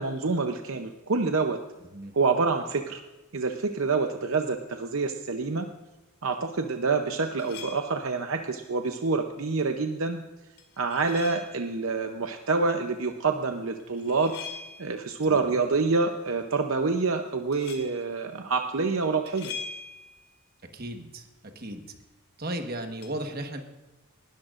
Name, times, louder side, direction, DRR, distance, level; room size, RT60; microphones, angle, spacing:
voice 1, 0.0-1.6 2.1-3.0 3.3-5.7 6.2-10.2 10.8-14.3 14.8-19.5, right 4 dB, 65° right, 5 dB, 0.7 m, -27 dB
sound 1, 7.4-8.1 10.6-11.7 13.8-15.1 17.5-18.0 19.3-20.3 23.0-23.1, left 5 dB, 80° left, 2.3 m, -42 dB
voice 2, 15.2-15.5 20.7-21.3 21.5-22.0 22.4-23.6, right 1 dB, 45° right, 5 dB, 1.3 m, -35 dB
19.5 x 13.0 x 2.5 m, 1.1 s
head